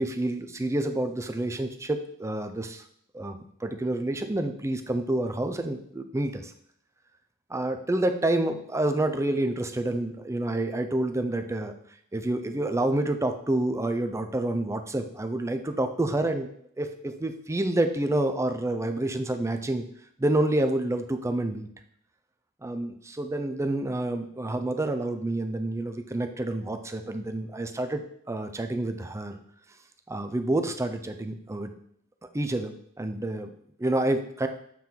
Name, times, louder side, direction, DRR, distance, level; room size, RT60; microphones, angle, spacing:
voice 1, 0.0-2.8 3.1-6.5 7.5-11.7 12.1-16.5 16.8-19.8 20.2-21.7 22.6-28.0 28.3-29.4 30.1-31.7 32.3-33.5 33.8-34.5, right 1 dB, 15° right, 7 dB, 0.5 m, -28 dB
7.5 x 4.4 x 3.8 m, 0.67 s
head